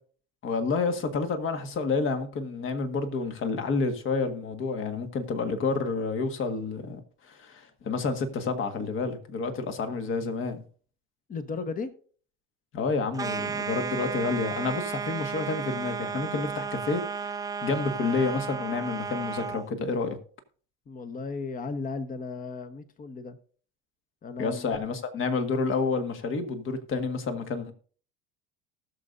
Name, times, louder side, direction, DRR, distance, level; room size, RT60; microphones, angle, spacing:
voice 1, 0.4-7.0 7.3-10.6 12.7-20.2 24.4-27.7, left 4 dB, 45° left, 1.7 m, -29 dB
voice 2, 11.3-11.9 20.9-23.4 24.2-24.8, left 4 dB, 30° left, 1.1 m, -35 dB
sound 1, 13.1-19.7, right 6 dB, 15° right, 0.3 m, -33 dB
19.0 x 6.8 x 2.6 m
supercardioid pair, 110°, 29 cm